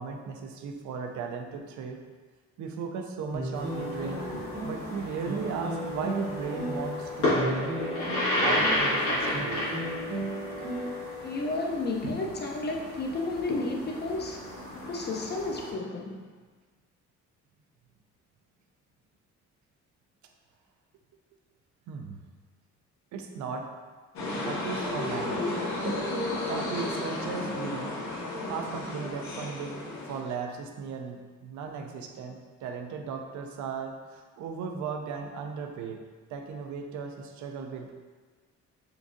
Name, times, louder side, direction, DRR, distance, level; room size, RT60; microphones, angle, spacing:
voice 1, 0.0-2.0 2.6-4.3 4.6-7.8 8.4-9.7 21.9-22.2 23.1-23.7 24.4-25.4 25.8-26.1 26.5-28.0 28.4-36.0 36.3-38.0, right 5 dB, 70° right, 3 dB, 0.5 m, -36 dB
sound 1, 3.3-11.4, right 1 dB, 30° right, 0.7 m, -35 dB
sound 2, 3.5-15.7, left 1 dB, 90° left, 1.5 m, -32 dB
voice 2, 11.2-14.4 14.7-16.3, left 2 dB, 35° left, 1 dB, 0.5 m, -32 dB
sound 3, 24.2-30.2, left 2 dB, 65° left, 0.8 m, -33 dB
3.8 x 2.3 x 2.5 m, 1.4 s
cardioid pair, 90°, 30 cm